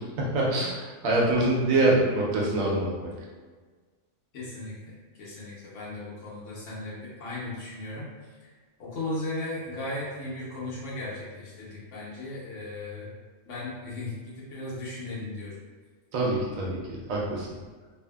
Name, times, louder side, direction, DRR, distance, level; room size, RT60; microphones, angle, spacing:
voice 1, 0.0-3.1 16.1-17.5, right 2 dB, 90° right, -4 dB, 1.1 m, -25 dB
voice 2, 4.3-8.1 8.8-13.1 13.4-15.5, left 2 dB, 70° left, -7 dB, 1.1 m, -36 dB
2.7 x 2.5 x 2.2 m, 1.4 s
omnidirectional pair, 1.3 m